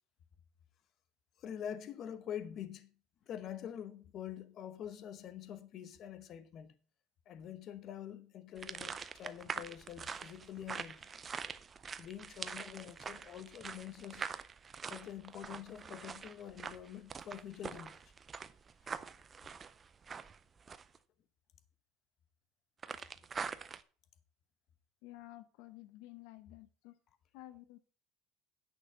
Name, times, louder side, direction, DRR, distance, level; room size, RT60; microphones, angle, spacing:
voice 1, 1.4-2.9 3.3-6.7 7.3-11.1 12.0-14.3 14.9-18.0 18.8-19.0, left 10 dB, 35° left, 0.9 m, -46 dB
sound 1, 8.6-21.0 22.8-23.8, right 6 dB, 20° right, 0.5 m, -44 dB
voice 2, 25.0-27.0 27.3-27.8, left 16 dB, 65° left, 0.7 m, -52 dB
10.0 x 6.1 x 5.4 m
cardioid pair, 170°, 0 cm